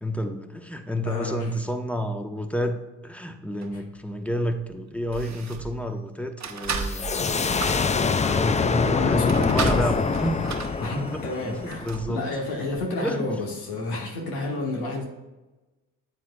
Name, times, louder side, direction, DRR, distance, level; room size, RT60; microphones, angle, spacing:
voice 1, 0.0-2.8 3.0-7.4 8.3-10.4 11.1-12.2 13.0-13.3, equal, 5° left, 6 dB, 0.9 m, -30 dB
voice 2, 1.0-1.5 3.7-3.8 8.2-9.9 10.8-15.0, left 2 dB, 85° left, 0 dB, 1.3 m, -30 dB
sound 1, 3.6-3.8 4.6-4.7 5.1-5.8 6.4-12.1 12.7-12.8, right 5 dB, 45° right, 1.0 m, -35 dB
sound 2, 6.8-12.3, left 5 dB, 20° left, 0.4 m, -25 dB
9.0 x 7.3 x 2.3 m, 1.1 s
supercardioid pair, 50°, 37 cm